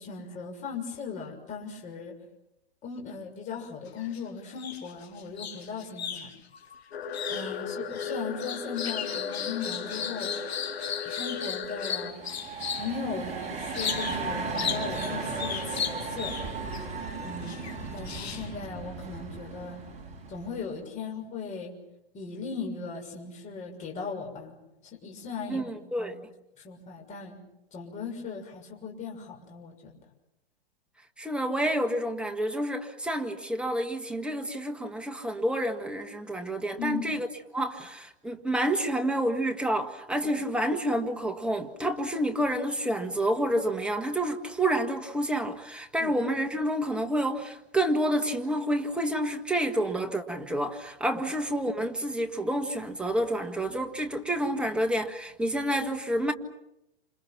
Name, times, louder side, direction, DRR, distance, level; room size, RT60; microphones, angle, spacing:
voice 1, 0.0-2.2 2.8-6.3 7.3-10.3 10.8-12.2 12.7-16.3 17.2-19.8 20.3-21.7 22.1-24.6 24.8-26.1 26.6-27.4 27.7-30.0 36.8-37.0 40.2-40.3 46.0-46.1 51.1-51.2, left 5 dB, 25° left, 6.5 m, -38 dB
sound 1, 3.9-4.2 4.5-13.0 13.7-14.3 14.5-16.8 17.5-18.6, left 8 dB, 85° left, 3.3 m, -36 dB
sound 2, 6.9-12.1, left 6 dB, 70° left, 4.3 m, -36 dB
sound 3, 12.0-20.7, right 4 dB, 20° right, 6.5 m, -36 dB
voice 2, 25.5-26.2 31.2-37.3 37.5-56.3, right 1 dB, 5° right, 1.6 m, -29 dB
29.0 x 28.0 x 6.0 m
hypercardioid pair, 145°, 31 cm